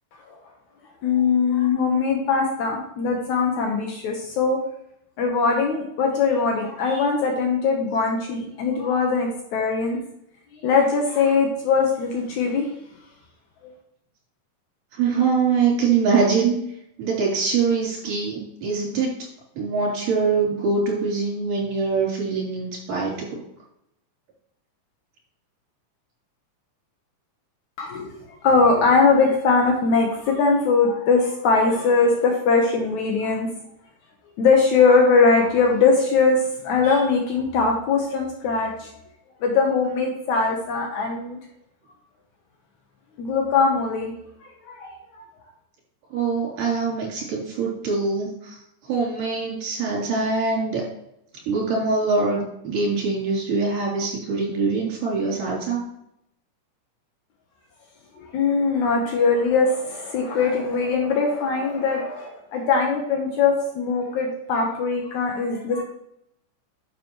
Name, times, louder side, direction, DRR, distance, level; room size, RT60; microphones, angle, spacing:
voice 1, 1.0-4.6 5.2-10.0 10.6-12.7 27.8-28.1 28.4-33.5 34.4-38.9 39.4-41.4 43.2-44.1 44.4-45.0 58.2-65.8, left 4 dB, 70° left, 1 dB, 2.3 m, -21 dB
voice 2, 14.9-16.6 17.0-19.1 19.6-23.4 46.1-48.6 48.9-50.8 51.5-55.8, right 4 dB, 75° right, -3 dB, 4.7 m, -23 dB
9.3 x 6.9 x 3.0 m, 0.77 s
omnidirectional pair, 3.7 m